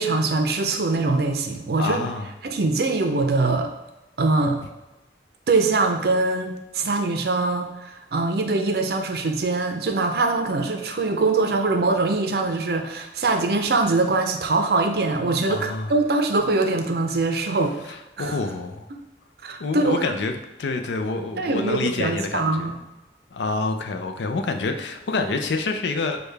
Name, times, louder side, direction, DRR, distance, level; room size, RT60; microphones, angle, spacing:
voice 1, 0.0-2.0 2.4-3.7 4.2-4.6 5.5-18.4 19.4-20.1 21.4-22.7, right 3 dB, 60° right, 5 dB, 0.5 m, -23 dB
voice 2, 1.8-2.3 15.5-15.9 18.2-18.9 19.6-22.7 23.3-26.2, left 3 dB, 80° left, 6 dB, 0.5 m, -27 dB
6.4 x 2.3 x 3.3 m, 1.0 s
head